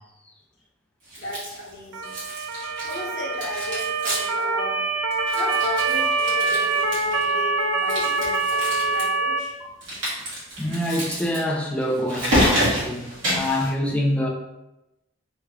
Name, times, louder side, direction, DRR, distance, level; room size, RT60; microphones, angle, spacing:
sound 1, 1.1-1.7 2.0-3.1 3.3-4.5 4.7-4.8 5.1-7.3 7.8-9.0 9.8-13.7, equal, 65° right, 1.5 m, -28 dB
voice 1, 1.2-2.1 2.8-4.9 5.3-9.6, left 1 dB, 60° left, -5 dB, 1.1 m, -35 dB
Motor vehicle (road) / Siren, 1.9-9.4, right 3 dB, 80° right, 0.4 m, -24 dB
voice 2, 10.6-14.3, left 1 dB, 5° left, -1 dB, 0.3 m, -26 dB
3.3 x 2.3 x 3.4 m, 0.94 s
head